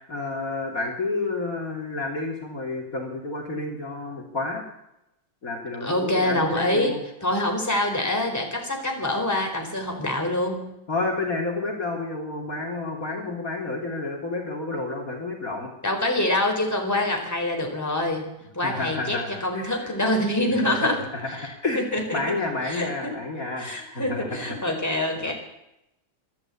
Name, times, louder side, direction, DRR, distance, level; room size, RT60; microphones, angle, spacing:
voice 1, 0.0-4.7 5.4-7.0 10.9-15.7 18.6-20.0 20.6-21.8 22.1-24.6 25.2-25.3, left 3 dB, 45° left, 0 dB, 3.5 m, -30 dB
voice 2, 5.8-10.7 15.8-22.3 22.6-23.2 23.6-25.3, left 1 dB, 10° left, 2 dB, 4.3 m, -26 dB
25.0 x 12.0 x 8.5 m, 0.87 s
omnidirectional pair, 2.2 m